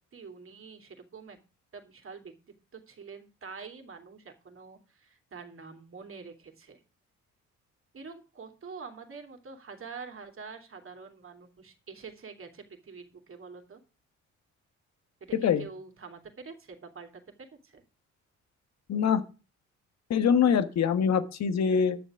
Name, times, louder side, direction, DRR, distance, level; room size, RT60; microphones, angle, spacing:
voice 1, 0.1-1.4 1.7-2.3 2.7-6.8 7.9-13.8 15.2-17.8, right 5 dB, 45° right, 5 dB, 3.0 m, -46 dB
voice 2, 18.9-19.2 20.1-22.0, left 7 dB, 60° left, 11 dB, 1.4 m, -24 dB
10.5 x 7.4 x 6.2 m, 0.33 s
cardioid pair, 90°, 30 cm